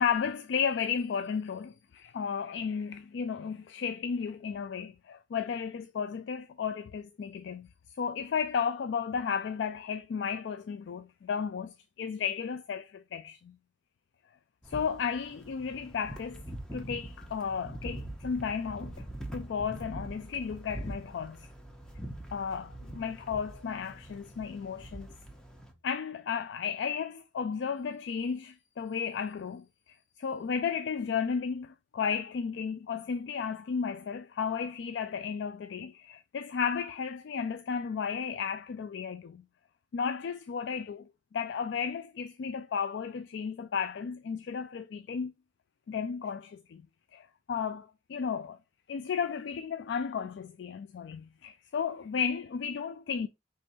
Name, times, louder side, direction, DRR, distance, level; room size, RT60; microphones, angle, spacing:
voice 1, 0.0-7.7 8.0-13.6 14.7-16.4 16.7-18.9 19.3-21.5 22.3-25.1 25.8-29.7 30.2-39.4 39.9-45.3 45.9-46.8 47.1-48.6 48.9-53.3, left 6 dB, 70° left, 0.3 m, -33 dB
sound 1, 14.6-25.7, right 1 dB, 5° left, 0.8 m, -44 dB
5.3 x 3.2 x 2.6 m
head